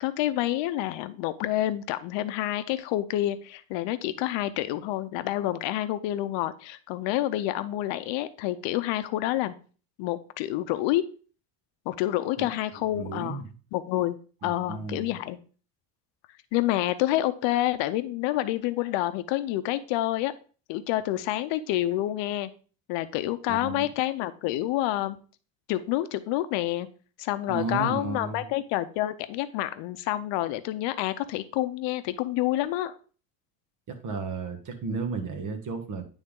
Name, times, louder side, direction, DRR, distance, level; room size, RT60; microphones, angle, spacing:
voice 1, 0.0-9.5 10.0-11.1 11.9-13.4 13.7-14.2 14.4-15.4 16.5-20.3 20.7-22.5 22.9-25.2 25.7-26.9 27.2-33.0, left 14 dB, 65° left, 12 dB, 0.8 m, -28 dB
voice 2, 12.9-13.5 14.4-15.1 23.5-23.9 27.5-28.5 33.9-36.0, right 4 dB, 40° right, 6 dB, 1.4 m, -33 dB
9.2 x 3.6 x 3.6 m, 0.39 s
supercardioid pair, 110°, 47 cm